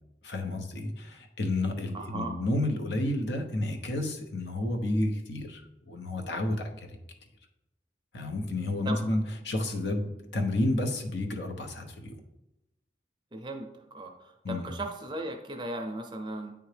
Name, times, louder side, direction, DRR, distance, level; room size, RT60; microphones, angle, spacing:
voice 1, 0.2-5.6 5.9-6.8 8.1-12.1 14.4-14.7, left 1 dB, 80° left, 4 dB, 0.9 m, -30 dB
voice 2, 1.9-2.4 8.8-9.1 13.3-16.5, right 1 dB, 25° right, 4 dB, 0.5 m, -37 dB
9.0 x 3.5 x 3.3 m, 0.93 s
head